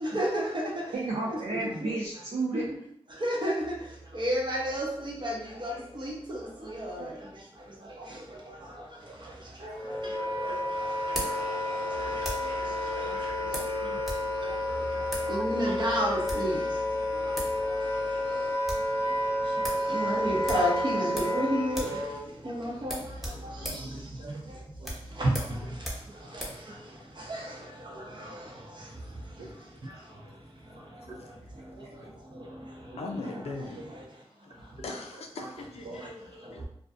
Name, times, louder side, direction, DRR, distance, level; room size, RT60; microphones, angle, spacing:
voice 1, 0.0-0.6 1.3-1.4 2.5-2.6 3.2-3.6 4.1-5.3 5.6-5.7 6.3-6.4 6.8-7.0 15.3-16.5 19.9-21.9 22.5-23.0 25.2-25.3 27.3-27.4, equal, 45° right, -1 dB, 0.8 m, -29 dB
voice 2, 0.9-2.7 7.0-7.4 7.7-8.1 8.5-8.7 9.6-10.3 10.6-10.7 11.8-12.1 12.6-13.0 13.4-13.7 14.4-15.5 18.1-18.2 19.0-19.2 23.5-24.3 24.8-24.9 29.4-29.5 32.9-33.3 33.8-33.9 34.8-35.5 35.8-36.0, right 3 dB, 70° right, -3 dB, 0.5 m, -38 dB
Wind instrument woodwind instrument, 9.6-22.3, left 1 dB, 20° left, 0.6 m, -31 dB
sound 1, 9.7-12.6 13.5-14.3 14.5-14.6 15.0-15.3 16.1-16.5 17.1-17.2 17.3-17.6 17.9-18.0 18.3-18.9 19.3-19.4 19.6-19.9 20.4-21.4 21.7-22.0 22.3-22.4 22.8-26.6, equal, ahead, 1.0 m, -38 dB
voice 3, 33.0-33.8 34.8-36.6, left 3 dB, 75° left, 2 dB, 0.4 m, -39 dB
2.4 x 2.2 x 2.4 m, 0.68 s
cardioid pair, 45°, 11 cm